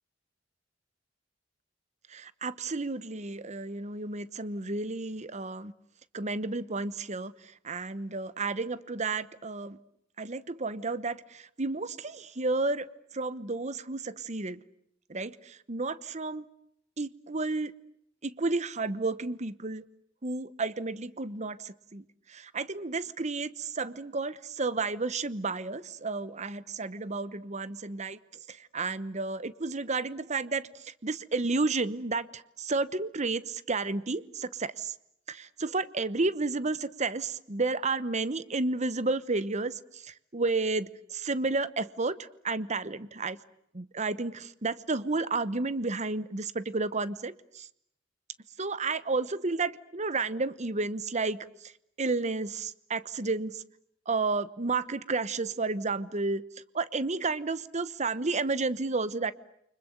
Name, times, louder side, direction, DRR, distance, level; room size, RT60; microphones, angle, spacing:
voice 1, 2.1-5.7 6.1-9.8 10.2-12.9 13.1-14.6 15.1-16.4 17.0-17.7 18.2-19.8 20.2-28.2 28.5-34.9 35.3-43.4 43.7-47.7 48.6-51.4 51.6-51.7 52.0-53.6 54.1-56.4 56.7-59.3, right 3 dB, 40° right, 16 dB, 1.1 m, -32 dB
29.5 x 25.0 x 8.0 m, 0.74 s
head